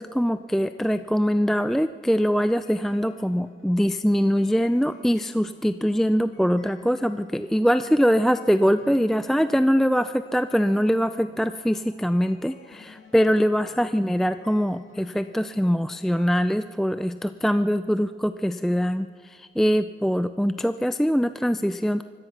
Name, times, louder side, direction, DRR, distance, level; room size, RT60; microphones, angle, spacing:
voice 1, 0.0-22.0, equal, ahead, 11 dB, 0.4 m, -23 dB
sound 1, 0.9-16.6, left 5 dB, 75° left, 2.6 m, -54 dB
24.0 x 18.0 x 6.0 m, 2.1 s
wide cardioid pair, 115°, 21 cm